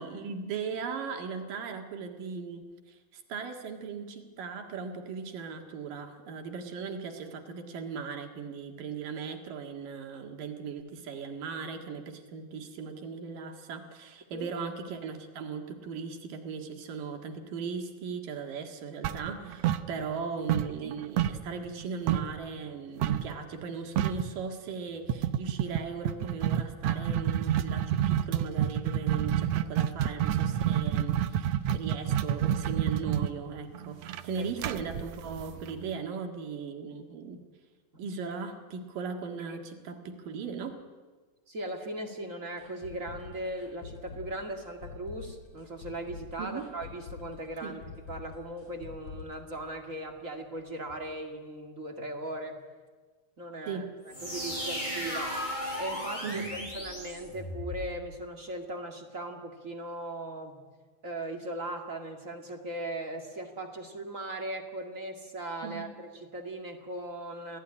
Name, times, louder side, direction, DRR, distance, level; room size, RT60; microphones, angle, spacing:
voice 1, 0.0-37.4 38.0-40.8 46.4-46.7 47.6-47.8 53.7-53.9 56.2-56.7 65.6-65.9, right 5 dB, 70° right, 4 dB, 3.5 m, -38 dB
sound 1, 19.0-20.2 20.5-22.4 23.0-23.3 23.6-23.7 24.0-24.3 25.1-35.9, right 10 dB, 85° right, 1.4 m, -28 dB
voice 2, 41.5-47.8 48.1-52.6 53.4-55.4 55.8-60.6 61.0-67.6, right 1 dB, 30° right, 4 dB, 1.8 m, -38 dB
sound 2, 42.6-50.3 50.6-50.7 51.1-51.2, left 5 dB, 55° left, 5.8 m, -46 dB
sound 3, 54.1-57.9, equal, 10° left, 6.9 m, -36 dB
27.5 x 17.5 x 9.9 m, 1.4 s
omnidirectional pair, 4.2 m